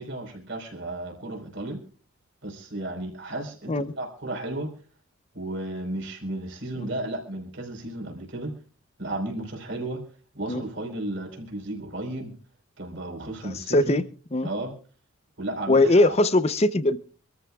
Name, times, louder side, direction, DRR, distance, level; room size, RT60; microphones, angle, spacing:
voice 1, 0.0-1.8 2.4-4.7 5.3-8.5 9.0-10.0 10.3-12.3 12.8-14.0 14.4-14.7 15.4-16.1, right 1 dB, 60° right, 4.3 m, -33 dB
voice 2, 13.4-14.0 14.3-14.5 15.7-17.0, left 2 dB, 30° left, 0.6 m, -21 dB
26.0 x 14.0 x 2.4 m
head